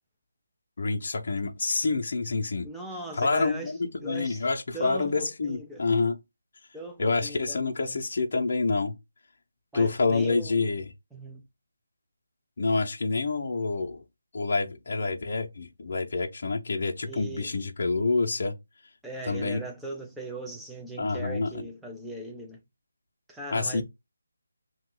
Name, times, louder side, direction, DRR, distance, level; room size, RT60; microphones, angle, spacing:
voice 1, 0.8-2.7 3.2-3.8 4.0-6.2 7.0-8.9 9.7-10.9 12.6-14.0 14.3-18.5 19.2-19.6 21.0-21.6 23.5-23.8, left 3 dB, 50° left, 0.6 m, -27 dB
voice 2, 2.6-4.4 4.7-5.8 6.7-8.0 9.7-10.7 11.1-11.4 17.1-17.6 19.0-22.6 23.3-23.8, right 2 dB, ahead, 0.4 m, -39 dB
2.9 x 2.3 x 3.7 m
figure-of-eight pair, 170°, 0 cm